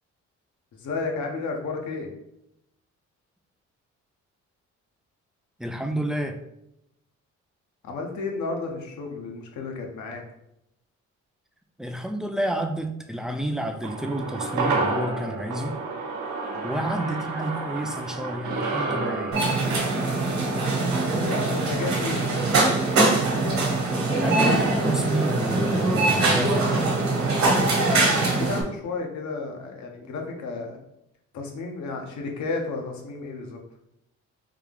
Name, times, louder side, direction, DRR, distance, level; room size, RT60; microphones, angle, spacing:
voice 1, 0.8-2.1 7.8-10.2 16.5-16.8 21.2-23.1 23.8-24.7 28.1-30.8 31.3-33.6, left 4 dB, 70° left, 2 dB, 0.8 m, -33 dB
voice 2, 5.6-6.4 11.8-15.8 16.6-19.4 24.2-26.7, right 1 dB, ahead, 5 dB, 0.3 m, -29 dB
sound 1, 13.8-22.3 22.6-22.7, right 3 dB, 85° right, 0.7 m, -31 dB
sound 2, 19.3-28.6, right 2 dB, 65° right, 1.1 m, -22 dB
3.5 x 2.3 x 3.4 m, 0.82 s
cardioid pair, 90°, 30 cm